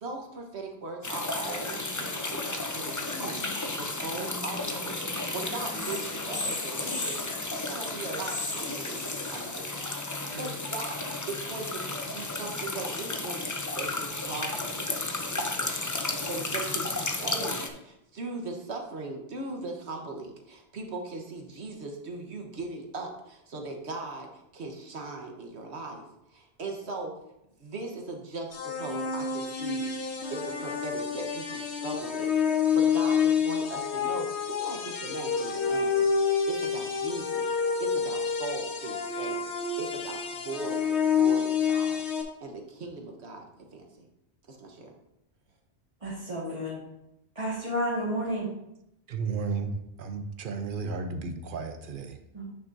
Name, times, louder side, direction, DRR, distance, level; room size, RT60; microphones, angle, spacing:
voice 1, 0.0-11.0 11.3-26.0 26.3-27.1 27.6-36.1 36.5-37.4 37.8-39.4 39.8-42.0 42.4-43.5 43.7-44.1 44.5-44.9, right 3 dB, 80° right, 2 dB, 1.4 m, -39 dB
sound 1, 1.0-17.7, left 2 dB, 20° left, 0.5 m, -33 dB
sound 2, 28.5-42.2, left 6 dB, 80° left, 1.2 m, -28 dB
voice 2, 46.0-46.8 47.4-48.5 52.3-52.4, equal, 30° right, -8 dB, 1.8 m, -31 dB
voice 3, 49.1-52.2, right 4 dB, 55° right, 8 dB, 0.8 m, -33 dB
9.3 x 6.1 x 2.6 m, 0.83 s
omnidirectional pair, 1.1 m